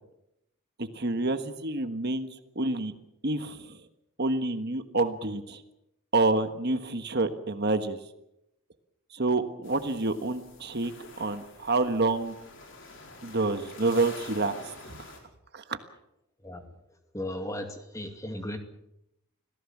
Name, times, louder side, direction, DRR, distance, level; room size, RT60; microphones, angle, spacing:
voice 1, 0.8-2.3 2.5-2.9 3.2-3.8 4.2-5.6 6.1-8.0 9.1-12.3 13.2-15.0 15.5-15.8, right 2 dB, 50° right, 9 dB, 1.4 m, -28 dB
sound 1, 9.6-15.2, left 3 dB, 60° left, 4.8 m, -47 dB
voice 2, 17.1-18.6, left 1 dB, 15° left, 5 dB, 2.3 m, -36 dB
26.5 x 17.0 x 7.3 m, 0.84 s
head